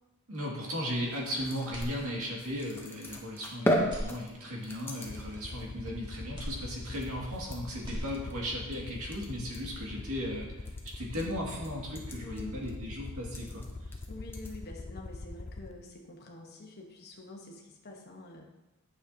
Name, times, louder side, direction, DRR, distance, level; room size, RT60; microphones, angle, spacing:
voice 1, 0.3-13.7, equal, 75° right, -2 dB, 2.1 m, -36 dB
sound 1, 0.9-14.6, equal, 10° left, 0.8 m, -39 dB
sound 2, 1.7-2.6 3.0-3.1 3.8-4.8 6.3-7.4 7.7-8.7, equal, 20° right, 1.6 m, -42 dB
Aircraft, 5.1-15.7, left 2 dB, 30° left, 0.4 m, -43 dB
voice 2, 12.2-12.6 14.1-18.5, left 2 dB, 45° left, -1 dB, 1.1 m, -47 dB
9.1 x 6.7 x 2.8 m, 1.0 s
head